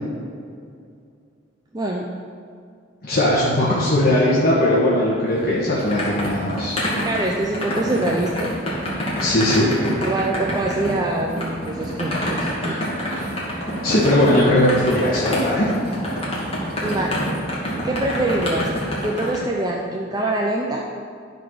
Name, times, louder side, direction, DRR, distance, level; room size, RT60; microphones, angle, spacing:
voice 1, 1.7-2.1 7.0-8.5 9.9-12.8 16.8-17.2 17.8-18.7 19.0-20.8, right 2 dB, 20° right, -1 dB, 0.5 m, -24 dB
voice 2, 3.0-6.7 9.2-9.7 12.7-13.2 13.8-15.7, left 1 dB, 50° left, -7 dB, 1.4 m, -19 dB
sound 1, 5.3-19.4, equal, 30° left, 2.0 m, -27 dB
12.0 x 4.0 x 6.3 m, 2.3 s
head